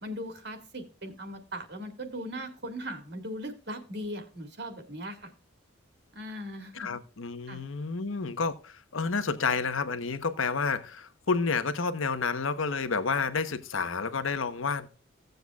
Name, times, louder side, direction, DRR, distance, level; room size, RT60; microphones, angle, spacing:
voice 1, 0.0-5.3 6.1-6.9 7.5-7.6, equal, 55° right, 1.8 m, -39 dB
voice 2, 6.7-14.9, left 4 dB, 80° left, 1.0 m, -30 dB
16.5 x 7.9 x 2.3 m
head